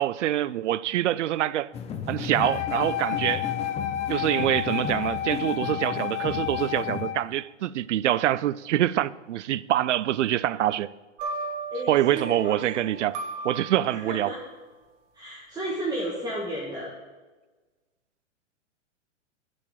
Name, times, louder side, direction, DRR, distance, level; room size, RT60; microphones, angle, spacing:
voice 1, 0.0-1.7 2.1-3.5 4.1-10.9 11.9-13.2 13.4-14.3, right 13 dB, 75° right, 0.5 m, -25 dB
sound 1, 1.7-7.1, left 7 dB, 15° left, 0.6 m, -35 dB
Wind instrument woodwind instrument, 2.4-7.3, left 11 dB, 70° left, 0.7 m, -31 dB
sound 2, 11.2-14.4, right 3 dB, 40° right, 1.9 m, -36 dB
voice 2, 11.7-12.8 13.9-14.4 15.1-16.9, right 1 dB, 10° right, 1.6 m, -33 dB
9.7 x 5.1 x 7.4 m
hypercardioid pair, 120°, 36 cm